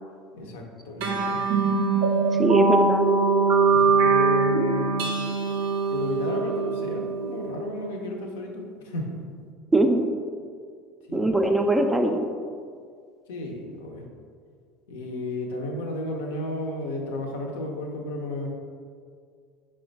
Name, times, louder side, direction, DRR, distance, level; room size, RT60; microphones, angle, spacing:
voice 1, 0.3-1.4 3.7-5.1 5.9-9.2 11.1-11.2 13.3-14.1 14.9-18.5, left 2 dB, 75° left, 1 dB, 0.5 m, -33 dB
sound 1, 1.0-7.9, right 4 dB, 70° right, 0.5 m, -23 dB
voice 2, 2.4-3.1 9.7-10.0 11.1-12.3, right 1 dB, 10° right, 4 dB, 0.3 m, -21 dB
4.9 x 2.2 x 3.8 m, 2.1 s
hypercardioid pair, 70°, 0 cm